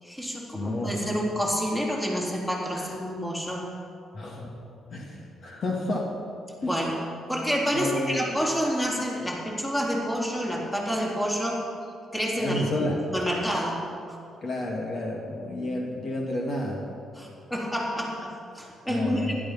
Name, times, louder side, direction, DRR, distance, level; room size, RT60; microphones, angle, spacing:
voice 1, 0.0-3.6 6.6-11.6 12.1-12.7 13.1-13.8 14.1-14.2 17.2-18.3 18.5-19.3, equal, 10° left, -2 dB, 3.7 m, -28 dB
voice 2, 0.5-1.1 2.8-2.9 4.1-4.6 4.9-6.1 6.6-6.8 7.7-8.2 12.4-13.0 14.4-16.9 18.9-19.3, left 1 dB, 50° left, -1 dB, 2.5 m, -30 dB
16.0 x 12.5 x 5.9 m, 2.4 s
cardioid pair, 90°, 0 cm